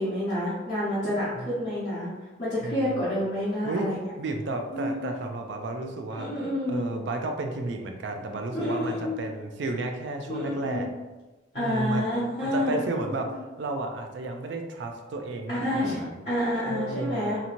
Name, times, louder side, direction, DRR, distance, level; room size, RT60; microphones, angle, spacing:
voice 1, 0.0-2.1 2.4-4.0 4.7-5.2 6.1-6.8 8.5-9.2 10.3-10.9 11.5-12.8 13.2-13.4 15.5-17.4, left 1 dB, 40° left, -12 dB, 0.9 m, -29 dB
voice 2, 2.6-3.0 3.6-3.9 4.2-6.3 6.7-10.9 11.5-12.1 12.4-13.3 13.6-16.3 16.7-17.3, right 2 dB, 60° right, 4 dB, 0.3 m, -32 dB
2.8 x 2.7 x 2.5 m, 1.2 s
head